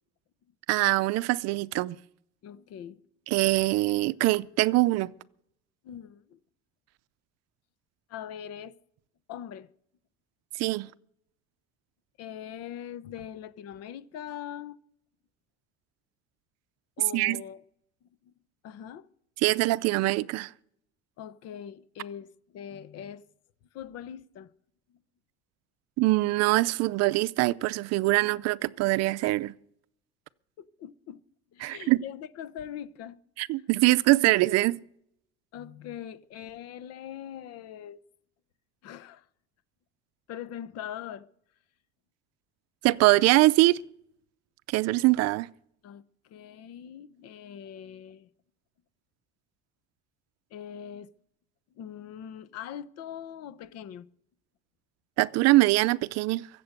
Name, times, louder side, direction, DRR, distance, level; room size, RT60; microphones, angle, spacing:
voice 1, 0.7-2.0 3.3-5.1 10.6-10.9 17.1-17.4 19.4-20.5 26.0-29.5 31.6-32.0 33.4-34.8 42.8-43.8 44.7-45.5 55.2-56.5, right 19 dB, 60° right, 0.5 m, -23 dB
voice 2, 2.4-3.0 5.8-6.4 8.1-8.8 9.3-9.7 12.2-14.8 17.0-17.6 18.2-18.3 18.6-19.1 21.2-23.2 23.7-24.5 24.9-25.0 30.6-31.2 31.5-33.2 35.5-38.0 38.8-39.2 40.3-41.3 45.8-48.3 50.5-51.1 51.8-54.1, left 9 dB, 55° left, 0.9 m, -42 dB
23.0 x 7.8 x 6.6 m
cardioid pair, 150°, 29 cm